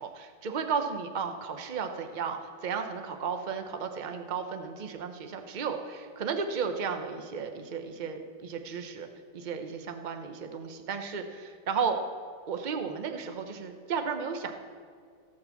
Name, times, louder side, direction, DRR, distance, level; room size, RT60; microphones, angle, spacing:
voice 1, 0.0-9.1 9.3-12.0 12.5-14.5, right 6 dB, 45° right, 6 dB, 0.6 m, -34 dB
16.0 x 5.5 x 7.1 m, 2.1 s
omnidirectional pair, 1.9 m